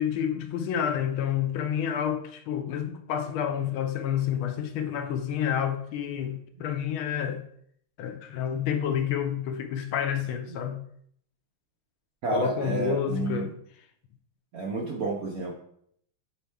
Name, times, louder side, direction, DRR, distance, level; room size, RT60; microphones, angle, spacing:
voice 1, 0.0-7.5 8.0-10.8 12.3-13.5, left 9 dB, 75° left, 1.4 m, -29 dB
voice 2, 12.2-13.5 14.5-15.5, right 3 dB, 65° right, 0.9 m, -30 dB
7.2 x 4.2 x 3.4 m
omnidirectional pair, 2.4 m